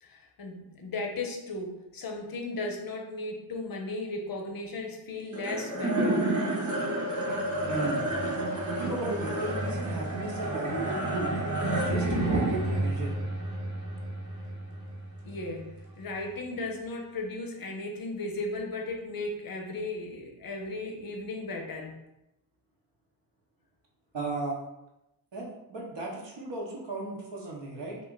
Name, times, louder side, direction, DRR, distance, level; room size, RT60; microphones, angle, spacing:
voice 1, 0.0-6.3 15.2-22.0, left 2 dB, 45° left, 3 dB, 0.6 m, -36 dB
sound 1, 5.3-15.8, right 1 dB, 40° right, 1.0 m, -30 dB
voice 2, 7.7-8.0 8.7-11.4 11.8-13.2 24.1-24.6 25.3-28.0, right 2 dB, 60° right, -2 dB, 1.0 m, -35 dB
2.4 x 2.1 x 3.7 m, 0.91 s
cardioid pair, 45°, 49 cm